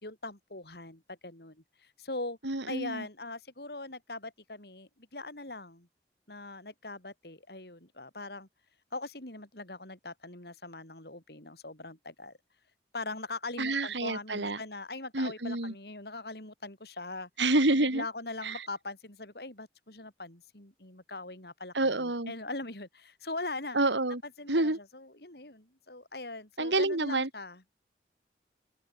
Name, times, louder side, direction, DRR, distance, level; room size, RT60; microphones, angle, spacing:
voice 1, 0.0-2.4 2.7-5.9 6.3-8.5 8.9-12.4 12.9-17.3 17.8-23.8 24.2-27.7, left 2 dB, 65° left, 4.2 m, -41 dB
voice 2, 2.4-3.0 13.6-14.6 15.1-15.7 17.4-18.0 18.4-18.6 21.7-22.3 23.7-24.2 24.5-24.8 26.6-27.3, right 2 dB, 85° right, 3.1 m, -28 dB
open air
head